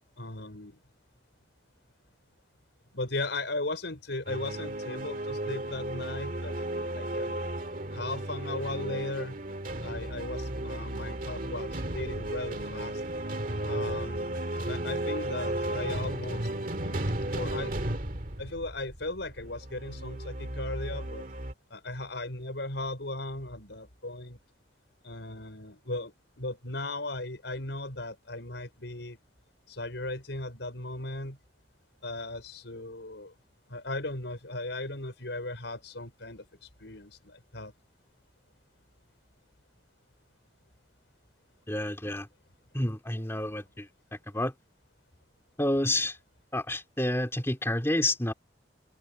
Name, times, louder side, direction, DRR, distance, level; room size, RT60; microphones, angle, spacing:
voice 1, 0.2-0.8 2.9-7.4 7.9-9.4 9.8-13.0 13.6-14.2 14.7-16.5 16.8-17.7 18.4-21.2 21.7-24.4 25.0-26.1 26.4-29.2 29.7-31.4 32.0-33.3 33.7-37.7, left 2 dB, 80° left, 5.3 m, -37 dB
sound 1, 4.3-21.5, right 1 dB, 50° right, 2.1 m, -34 dB
voice 2, 41.7-42.3 42.7-43.9 44.3-44.5 45.6-46.2 46.5-48.3, left 1 dB, 15° left, 3.1 m, -29 dB
open air
head